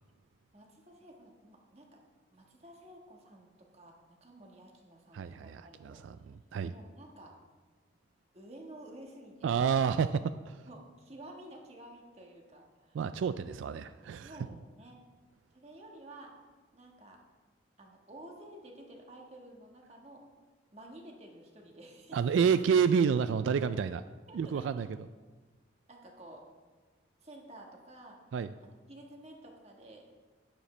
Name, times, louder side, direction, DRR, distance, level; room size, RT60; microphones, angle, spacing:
voice 1, 0.5-2.0 2.3-6.0 6.6-7.3 8.3-9.5 10.7-13.0 14.2-15.0 15.5-16.3 16.7-17.2 17.8-20.2 20.7-22.2 24.3-24.7 25.9-26.4 27.2-28.2 28.6-30.0, right 1 dB, 35° right, 1 dB, 1.5 m, -52 dB
voice 2, 5.1-6.7 9.4-10.7 12.9-14.3 22.1-24.0 24.3-24.9 28.3-28.5, right 6 dB, 80° right, 12 dB, 0.3 m, -29 dB
12.0 x 10.0 x 3.3 m, 1.3 s
head